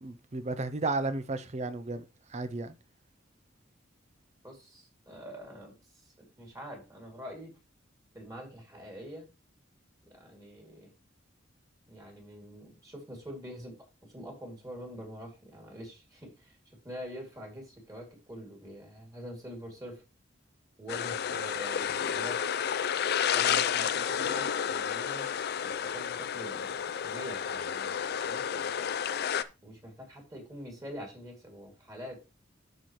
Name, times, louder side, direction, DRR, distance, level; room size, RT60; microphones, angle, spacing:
voice 1, 0.0-2.0 2.3-2.7, right 3 dB, 35° right, 0.6 m, -33 dB
voice 2, 4.4-7.6 8.1-9.3 10.0-10.9 11.9-13.8 14.0-20.0 20.8-22.7 23.3-25.3 25.6-27.9 28.2-28.9 29.6-32.2, equal, 20° right, 2.6 m, -45 dB
sound 1, 20.9-29.4, left 8 dB, 55° left, 0.4 m, -31 dB
13.0 x 4.3 x 3.1 m
head